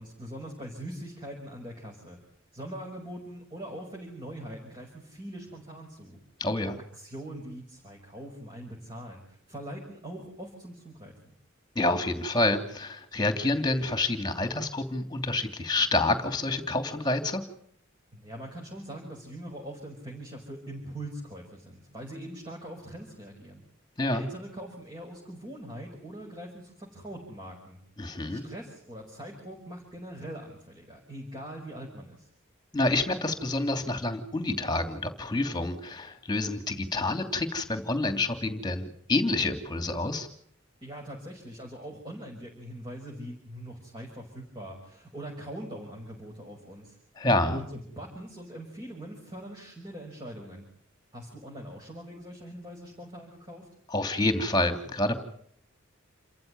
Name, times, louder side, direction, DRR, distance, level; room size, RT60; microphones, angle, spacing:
voice 1, 0.0-2.2 2.5-6.2 7.0-11.3 18.1-23.6 24.1-27.8 28.3-32.3 40.8-47.0 47.5-50.7 51.1-53.7, right 1 dB, 20° right, -1 dB, 5.9 m, -42 dB
voice 2, 6.4-6.8 11.7-17.4 24.0-24.3 28.0-28.4 32.7-40.3 47.2-47.6 53.9-55.2, left 2 dB, 20° left, 7 dB, 2.9 m, -28 dB
29.0 x 15.0 x 9.6 m, 0.64 s
head